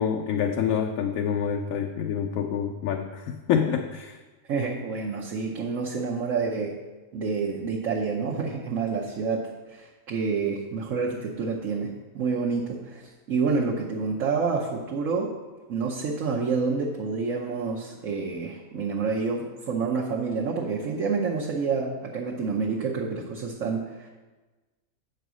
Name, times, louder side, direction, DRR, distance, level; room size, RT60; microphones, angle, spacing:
voice 1, 0.0-4.2, left 7 dB, 70° left, 4 dB, 0.9 m, -27 dB
voice 2, 4.5-6.7 7.1-15.3 15.7-24.1, right 4 dB, 65° right, -3 dB, 1.2 m, -28 dB
8.1 x 4.7 x 6.1 m, 1.2 s
omnidirectional pair, 1.5 m